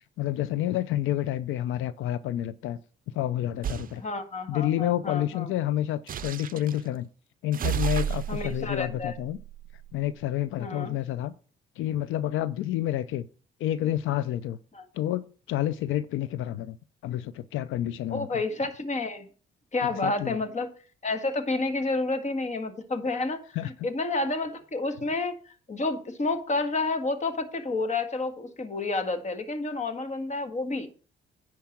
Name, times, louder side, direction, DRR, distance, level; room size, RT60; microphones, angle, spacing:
voice 1, 0.0-2.8 3.1-4.0 4.5-7.1 7.4-9.4 9.9-11.3 11.8-13.3 13.6-14.6 14.9-16.8 17.0-18.3 20.0-20.4 23.6-23.7, left 12 dB, 85° left, 0.5 m, -29 dB
sound 1, 3.6-3.9 6.1-6.8 7.5-10.2, right 9 dB, 45° right, 0.5 m, -32 dB
voice 2, 4.0-5.5 8.3-9.1 10.6-10.9 14.7-14.8 18.1-19.3 19.7-20.7 21.0-30.9, left 3 dB, 35° left, 1.7 m, -30 dB
10.5 x 4.7 x 7.3 m
cardioid pair, 90°, 20 cm